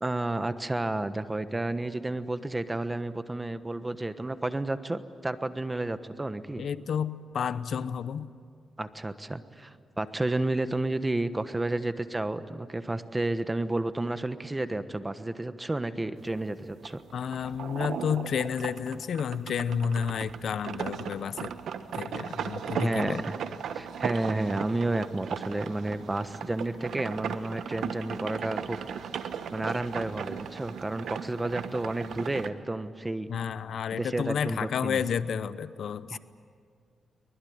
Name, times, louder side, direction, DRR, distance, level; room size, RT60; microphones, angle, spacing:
voice 1, 0.0-6.7 8.8-17.0 22.7-23.4 23.7-28.8 29.5-33.3 33.9-35.0 36.1-36.2, right 2 dB, 15° right, 11 dB, 1.2 m, -31 dB
voice 2, 6.6-8.3 17.1-21.5 21.9-23.2 33.3-36.2, left 7 dB, 70° left, 15 dB, 0.7 m, -31 dB
sound 1, 16.2-32.5, right 7 dB, 80° right, 1.2 m, -37 dB
23.5 x 20.5 x 9.5 m, 2.1 s
cardioid pair, 95°, 0 cm